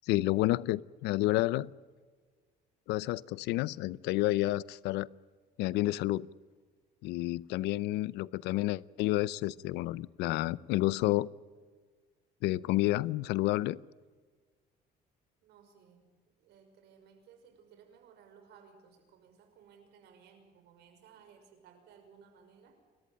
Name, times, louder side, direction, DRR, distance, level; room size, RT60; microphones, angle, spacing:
voice 1, 0.1-1.7 2.9-5.1 5.6-6.3 7.0-11.3 12.4-13.8, left 17 dB, 90° left, 21 dB, 0.6 m, -30 dB
voice 2, 15.4-16.1 16.4-22.8, right 7 dB, 80° right, 6 dB, 5.8 m, -59 dB
29.0 x 14.0 x 8.9 m, 1.5 s
cardioid pair, 110°, 17 cm